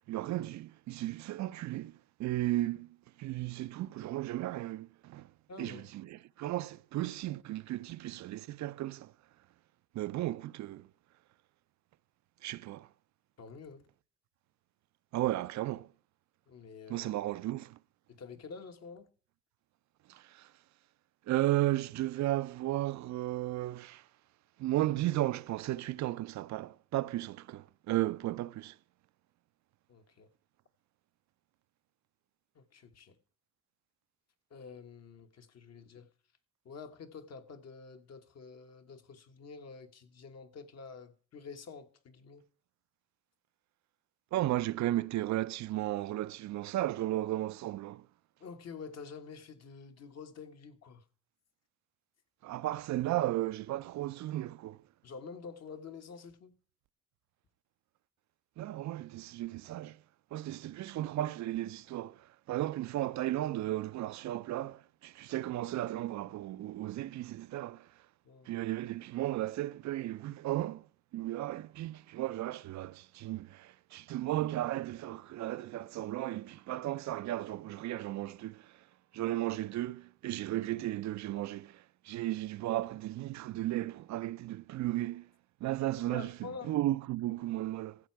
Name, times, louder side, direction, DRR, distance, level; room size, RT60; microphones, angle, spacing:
voice 1, 0.1-1.9 2.2-2.9 3.2-5.2 5.6-5.8 6.4-9.1 10.0-10.8 12.4-12.9 15.1-15.9 16.9-17.7 21.3-24.0 24.6-28.7 44.3-48.0 52.4-54.8 58.6-60.0 60.3-62.2 62.5-67.8 68.5-70.8 71.1-78.6 79.1-81.7 82.1-85.2 85.6-86.3 86.7-88.0, right 15 dB, 65° right, 0.5 m, -34 dB
voice 2, 5.5-5.9 13.4-13.9 16.5-17.1 18.1-19.1 29.9-30.3 32.5-33.2 34.5-36.1 36.6-42.4 48.4-51.0 55.0-56.5 68.2-68.5 86.1-86.8, left 5 dB, 60° left, 1.4 m, -48 dB
14.5 x 7.5 x 4.6 m
cardioid pair, 90°, 30 cm